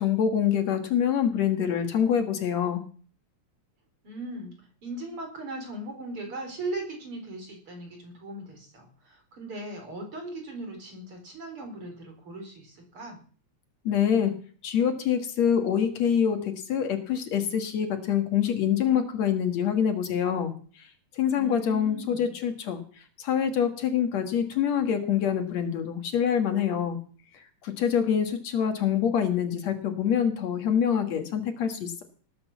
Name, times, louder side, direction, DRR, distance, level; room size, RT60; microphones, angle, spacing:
voice 1, 0.0-2.8 13.8-14.3 14.6-20.9 21.1-22.8 23.2-27.0 27.6-32.0, left 8 dB, 65° left, 7 dB, 2.8 m, -25 dB
voice 2, 4.0-4.6 4.8-13.2 21.3-22.3, right 2 dB, 45° right, 3 dB, 4.9 m, -38 dB
19.0 x 8.1 x 7.2 m, 0.44 s
omnidirectional pair, 3.4 m